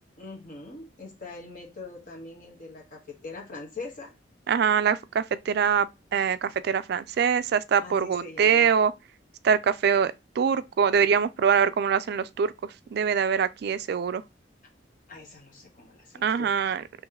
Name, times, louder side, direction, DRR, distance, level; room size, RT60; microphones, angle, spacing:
voice 1, 0.2-4.1 7.8-8.7 15.1-16.7, left 3 dB, 45° left, 1.4 m, -42 dB
voice 2, 4.5-8.9 9.4-12.5 12.9-14.2 16.2-16.8, right 7 dB, 60° right, 0.3 m, -24 dB
3.1 x 3.0 x 3.7 m
head